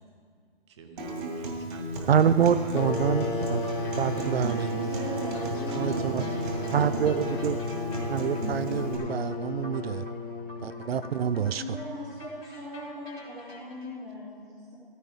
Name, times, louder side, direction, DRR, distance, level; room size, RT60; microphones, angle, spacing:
voice 1, 0.7-3.8 5.7-6.9, right 4 dB, 30° right, 0.9 m, -48 dB
Acoustic guitar, 1.0-9.0, right 1 dB, 55° right, 2.2 m, -35 dB
voice 2, 2.1-3.6 4.0-4.9 5.7-6.2 6.7-7.6 8.1-10.0 10.6-11.6, right 7 dB, 85° right, 0.6 m, -26 dB
sound 1, 2.8-11.1, left 2 dB, 60° left, 1.3 m, -34 dB
sound 2, 3.6-13.9, left 2 dB, 85° left, 3.5 m, -49 dB
voice 3, 4.8-7.0 11.2-14.8, equal, 5° right, 0.4 m, -40 dB
15.0 x 9.5 x 3.5 m
hypercardioid pair, 165°, 30 cm